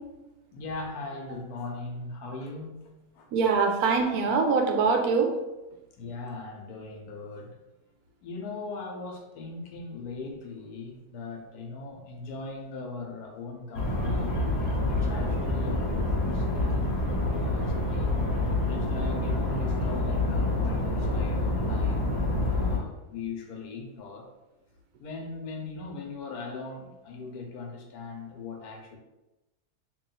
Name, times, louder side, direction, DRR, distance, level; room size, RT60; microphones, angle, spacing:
voice 1, 0.5-2.9 3.1-3.3 6.0-7.6 8.2-14.3 14.6-16.9 17.3-18.1 18.7-22.0 22.3-24.3 25.0-29.0, left 3 dB, 80° left, 2 dB, 1.2 m, -39 dB
voice 2, 3.3-5.3, right 4 dB, 80° right, 3 dB, 1.1 m, -23 dB
sound 1, 13.7-22.8, left 2 dB, 50° left, 1.1 m, -27 dB
3.0 x 2.8 x 3.9 m, 1.0 s
omnidirectional pair, 1.6 m